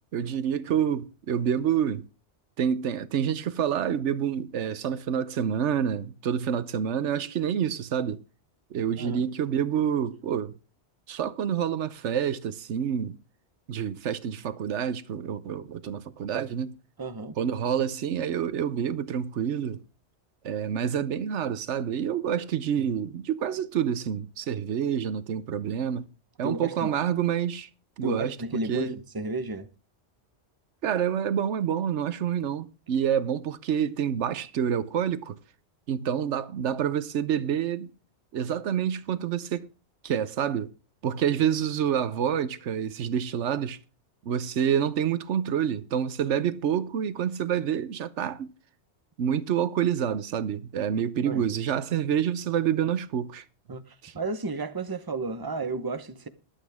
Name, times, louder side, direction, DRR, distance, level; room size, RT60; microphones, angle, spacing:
voice 1, 0.1-2.0 2.6-8.2 8.7-10.5 11.1-13.2 13.7-16.8 17.4-19.8 20.4-26.1 26.4-27.7 28.0-28.4 28.7-29.0 30.8-35.3 35.9-37.9 38.3-39.7 40.0-40.7 41.0-43.8 44.2-48.5 49.2-53.4 54.0-54.1, right 8 dB, 90° right, 1.1 m, -28 dB
voice 2, 9.0-9.3 17.0-17.4 26.4-26.9 28.0-29.7 41.3-41.4 51.2-51.4 53.7-56.3, right 3 dB, 20° right, 0.9 m, -33 dB
21.5 x 8.3 x 3.5 m
omnidirectional pair, 1.2 m